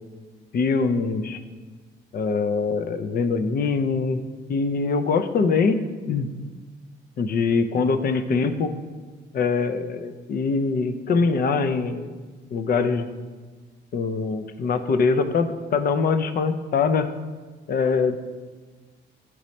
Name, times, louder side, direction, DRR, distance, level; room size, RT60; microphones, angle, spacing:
voice 1, 0.5-1.4 2.1-4.2 4.5-6.3 7.2-8.7 9.3-12.2 12.5-13.1 13.9-17.1 17.7-18.2, left 4 dB, 50° left, 10 dB, 0.5 m, -23 dB
8.5 x 3.2 x 4.1 m, 1.4 s
cardioid pair, 90°, 20 cm